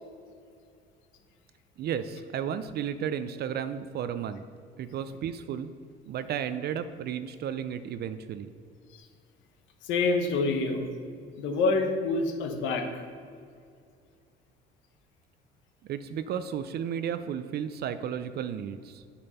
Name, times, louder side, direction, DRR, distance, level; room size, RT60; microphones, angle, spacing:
voice 1, 1.8-4.4 4.8-5.7 6.1-8.5 15.8-19.1, right 8 dB, 55° right, 11 dB, 0.5 m, -33 dB
voice 2, 9.8-10.9 11.4-13.1, left 3 dB, 75° left, 4 dB, 1.1 m, -27 dB
7.7 x 6.0 x 5.6 m, 2.3 s
supercardioid pair, 80°, 20 cm